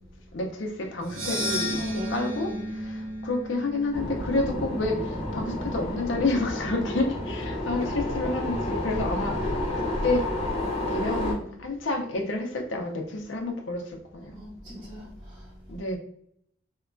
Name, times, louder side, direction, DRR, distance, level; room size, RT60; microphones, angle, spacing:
voice 1, 0.3-2.5 2.8-10.3 10.9-14.4 15.7-16.0, left 2 dB, 65° left, 0.5 m, -29 dB
sound 1, 1.0-5.3, equal, 80° right, 0.7 m, -33 dB
voice 2, 1.7-2.8 7.6-8.1 14.3-15.8, equal, 20° right, 0.7 m, -42 dB
sound 2, 3.9-11.3, left 1 dB, 30° left, 0.7 m, -30 dB
2.8 x 2.2 x 2.5 m
head